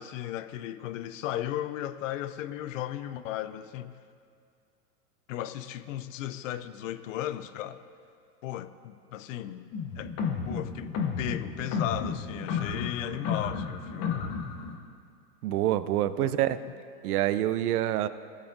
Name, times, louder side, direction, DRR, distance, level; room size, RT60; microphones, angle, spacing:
voice 1, 0.0-3.9 5.3-7.8 8.4-9.7 10.0-10.1 10.5-10.9 11.2-14.3 16.0-16.3, left 12 dB, 55° left, 13 dB, 0.5 m, -35 dB
various rhyhms, 9.7-14.8, left 6 dB, 30° left, 0.8 m, -32 dB
voice 2, 15.4-16.6 17.0-18.1, right 13 dB, 65° right, 14 dB, 0.6 m, -26 dB
16.0 x 8.3 x 2.6 m, 2.3 s
hypercardioid pair, 110°, 48 cm